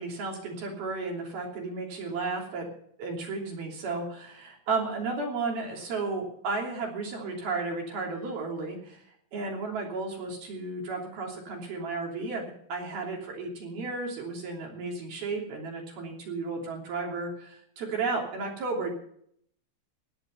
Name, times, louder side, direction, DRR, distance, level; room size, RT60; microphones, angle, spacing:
voice 1, 0.0-2.7 3.0-18.9, right 3 dB, 50° right, 0 dB, 4.5 m, -33 dB
18.0 x 10.5 x 5.6 m, 0.66 s
omnidirectional pair, 6.0 m